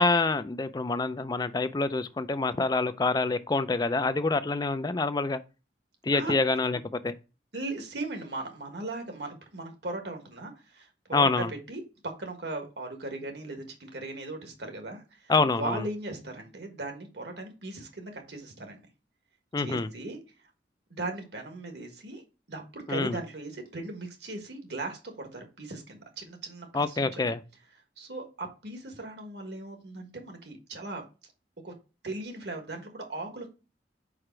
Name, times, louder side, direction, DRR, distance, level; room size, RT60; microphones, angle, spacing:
voice 1, 0.0-5.4 6.0-7.1 11.1-11.5 15.3-15.8 19.5-19.9 22.9-23.2 26.7-27.4, left 3 dB, 20° left, 0.4 m, -26 dB
voice 2, 7.5-18.9 19.6-20.2 20.9-22.2 22.5-27.2 28.0-31.0 31.6-31.7 32.0-33.5, right 2 dB, 65° right, 1.5 m, -38 dB
4.9 x 4.9 x 4.4 m
head